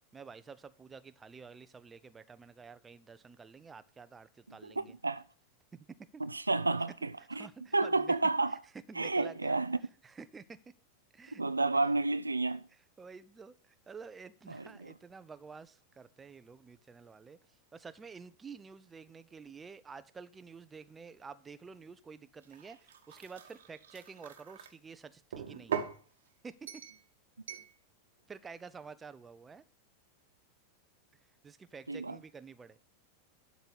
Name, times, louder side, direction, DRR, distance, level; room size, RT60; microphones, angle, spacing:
voice 1, 0.1-4.9 5.7-5.8 6.1-6.2 7.2-8.2 8.5-8.6 8.9-9.6 10.0-10.6 11.1-11.4 12.7-25.7 26.4-26.7 28.3-29.6 31.4-32.8, right 5 dB, 15° right, 0.7 m, -50 dB
voice 2, 4.6-5.2 6.2-7.5 7.7-8.6 9.0-9.8 11.3-12.6 14.5-14.9 31.9-32.2, right 3 dB, 80° right, 0.4 m, -31 dB
sound 1, 22.4-24.7 25.3-26.0 26.7-27.0 27.5-27.7, right 8 dB, 65° right, 1.2 m, -41 dB
12.0 x 4.1 x 8.1 m
figure-of-eight pair, 90°, 0 cm